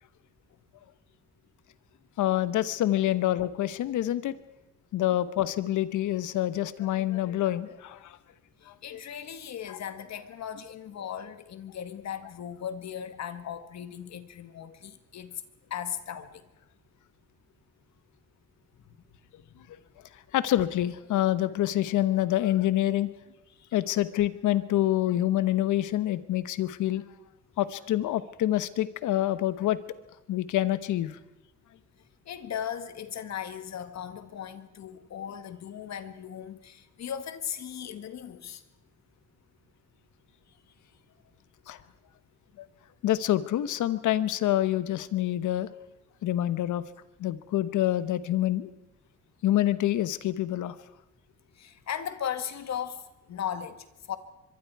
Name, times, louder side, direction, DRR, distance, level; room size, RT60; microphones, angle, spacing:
voice 1, 2.2-4.4 4.9-8.2 8.7-9.0 9.7-9.8 20.3-23.1 23.7-27.0 27.6-29.8 30.3-31.2 41.7-41.8 42.6-42.7 43.0-45.7 46.2-46.8 47.2-48.7 49.4-50.8, left 13 dB, 80° left, 14 dB, 1.2 m, -26 dB
voice 2, 8.6-15.4 15.7-16.5 18.9-19.0 23.5-23.7 32.3-38.6 51.5-54.2, left 9 dB, 60° left, 10 dB, 1.8 m, -37 dB
24.0 x 23.0 x 4.8 m, 0.96 s
cardioid pair, 90°, 30 cm